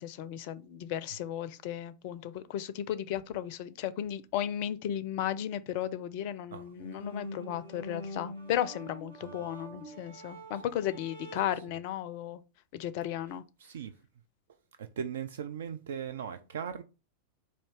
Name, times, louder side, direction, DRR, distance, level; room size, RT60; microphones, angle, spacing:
voice 1, 0.0-12.4 12.7-13.4, left 11 dB, 45° left, 0.4 m, -35 dB
voice 2, 6.5-7.1 9.2-9.7 10.5-10.6 13.6-14.0 14.8-16.8, right 8 dB, 60° right, 0.3 m, -39 dB
sound 1, 6.7-11.7, left 1 dB, 80° right, 1.6 m, -45 dB
4.2 x 2.7 x 4.7 m
figure-of-eight pair, 90°, 0 cm